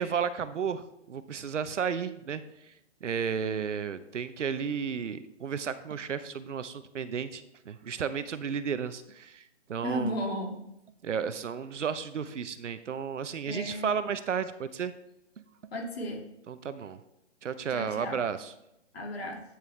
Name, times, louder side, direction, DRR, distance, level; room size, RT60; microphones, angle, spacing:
voice 1, 0.0-2.7 3.0-10.1 11.0-14.9 16.5-17.0 17.4-18.5, right 7 dB, 75° right, 12 dB, 0.8 m, -33 dB
voice 2, 9.8-10.6 13.5-13.9 15.7-16.2 17.7-18.3 18.9-19.4, equal, 55° left, 0 dB, 2.3 m, -34 dB
9.0 x 6.9 x 3.2 m, 0.84 s
hypercardioid pair, 170°, 36 cm